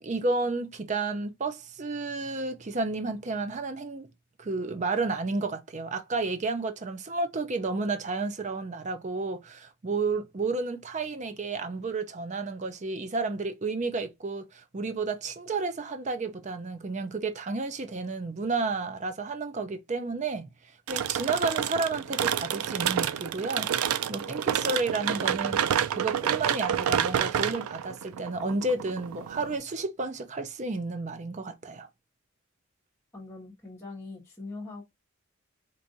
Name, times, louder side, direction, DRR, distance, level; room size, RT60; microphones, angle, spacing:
voice 1, 0.0-4.1 4.4-20.5 20.9-25.6 25.9-31.9, right 3 dB, 35° right, 0.5 m, -31 dB
sound 1, 20.9-29.6, right 9 dB, 85° right, 0.4 m, -29 dB
voice 2, 33.1-34.9, left 3 dB, 15° left, 1.2 m, -42 dB
4.5 x 2.6 x 2.6 m
head